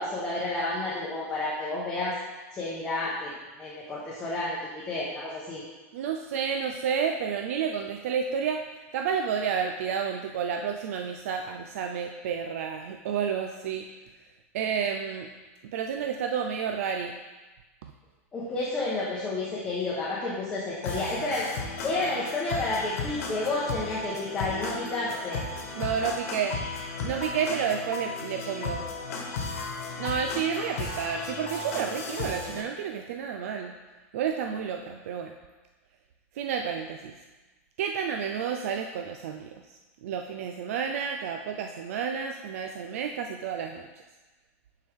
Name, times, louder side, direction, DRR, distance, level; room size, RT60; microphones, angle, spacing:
voice 1, 0.0-2.2 2.5-3.3 3.6-5.6 18.3-21.5 21.8-25.4, left 2 dB, 10° left, -7 dB, 1.0 m, -30 dB
voice 2, 5.9-8.6 8.9-13.9 14.5-15.3 15.6-17.2 25.8-26.6 27.0-28.8 30.0-33.8 34.1-35.3 36.3-37.2 37.8-43.9, right 7 dB, 75° right, 4 dB, 0.5 m, -30 dB
sound 1, 20.8-32.6, left 3 dB, 85° left, 1.2 m, -35 dB
9.3 x 4.7 x 3.5 m, 1.2 s
supercardioid pair, 165°, 8 cm